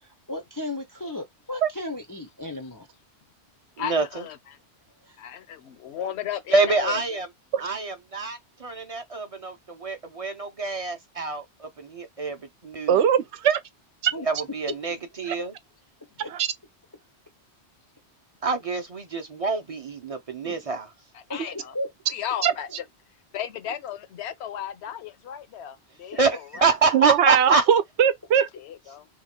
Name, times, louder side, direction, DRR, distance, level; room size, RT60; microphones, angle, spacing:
voice 1, 0.0-2.9 5.0-5.2 14.1-14.3 14.7-14.8 15.4-15.5 16.2-16.3 21.3-21.9, left 2 dB, 30° left, 0.4 m, -35 dB
voice 2, 3.8-4.6 5.2-7.2 21.1-21.7 22.1-22.7 23.3-26.7 28.5-29.1, left 10 dB, 75° left, 0.9 m, -35 dB
voice 3, 6.5-7.3 7.6-12.4 12.6-13.0 14.3-15.5 18.4-20.9 26.2-26.3 26.6-27.6, right 4 dB, 40° right, 0.6 m, -26 dB
voice 4, 12.9-13.6 14.0-14.1 16.3-16.5 20.4-20.5 22.4-22.5 26.9-28.5, right 8 dB, 85° right, 0.9 m, -20 dB
2.9 x 2.3 x 4.2 m
omnidirectional pair, 1.1 m